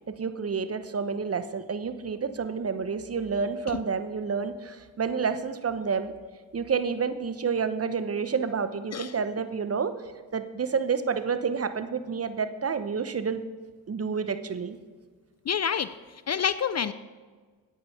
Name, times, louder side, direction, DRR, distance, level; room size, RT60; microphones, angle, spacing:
voice 1, 0.1-6.1 6.5-9.9 10.3-13.4 13.9-14.8, right 5 dB, 30° right, 11 dB, 0.9 m, -29 dB
voice 2, 15.5-15.9 16.3-16.9, left 7 dB, 35° left, 14 dB, 0.5 m, -27 dB
9.5 x 8.8 x 5.7 m, 1.4 s
supercardioid pair, 55°, 45 cm